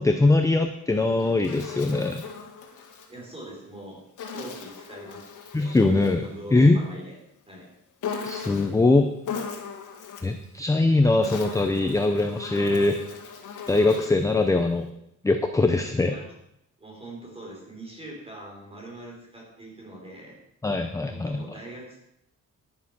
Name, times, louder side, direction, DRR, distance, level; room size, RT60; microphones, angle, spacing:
voice 1, 0.0-2.2 5.5-6.8 8.2-9.1 10.2-13.0 13.7-14.9 15.2-16.1 20.6-21.4, left 2 dB, 10° left, 6 dB, 0.5 m, -22 dB
Insect, 0.9-3.1 4.2-6.3 8.0-8.8 9.2-10.4 11.0-14.3, left 6 dB, 70° left, 2.0 m, -38 dB
voice 2, 3.1-4.0 4.3-5.3 5.6-5.8 6.2-7.2 7.5-7.7 16.0-16.3 16.8-20.4 21.0-22.0, right 1 dB, 20° right, -2 dB, 4.4 m, -42 dB
11.0 x 9.7 x 5.9 m, 0.79 s
wide cardioid pair, 170°, 32 cm